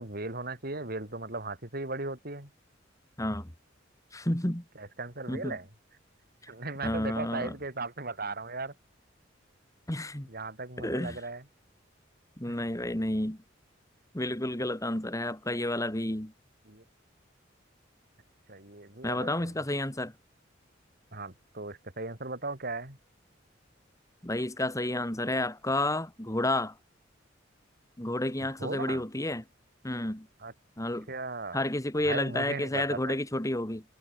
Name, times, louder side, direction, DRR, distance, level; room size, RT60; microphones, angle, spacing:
voice 1, 0.0-2.5 4.8-5.7 6.5-8.7 10.2-11.4 12.5-12.6 16.7-16.8 18.5-19.5 21.1-23.0 28.6-29.0 30.4-30.5 31.1-31.6 32.0-33.2, right 3 dB, 50° right, 5.7 m, -37 dB
voice 2, 3.2-3.5 4.1-4.6 5.3-5.6 6.8-7.5 9.9-10.3 10.8-11.2 12.4-13.4 14.1-16.3 19.0-20.1 24.2-26.7 28.0-29.4 29.8-30.3 30.8-31.1 31.5-33.8, left 1 dB, 15° left, 2.3 m, -30 dB
head